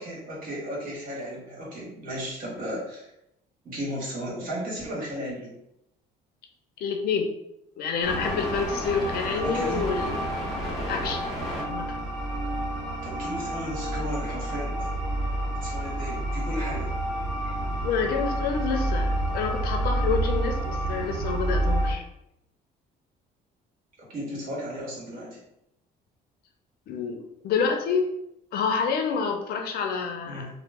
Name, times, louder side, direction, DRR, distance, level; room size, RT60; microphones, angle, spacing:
voice 1, 0.0-3.1 3.6-5.5 9.3-9.8 13.0-14.9 15.6-16.9 24.1-25.4 30.2-30.5, equal, 55° right, -5 dB, 1.5 m, -35 dB
voice 2, 6.8-7.3 7.8-10.2 10.9-11.2 11.6-12.0 17.5-17.6 17.8-22.0 26.9-27.2 27.4-28.1 28.5-30.5, left 5 dB, 65° left, 3 dB, 0.6 m, -28 dB
sound 1, 8.0-21.9, right 1 dB, ahead, 1.3 m, -29 dB
2.9 x 2.0 x 3.4 m, 0.82 s
cardioid pair, 110°, 17 cm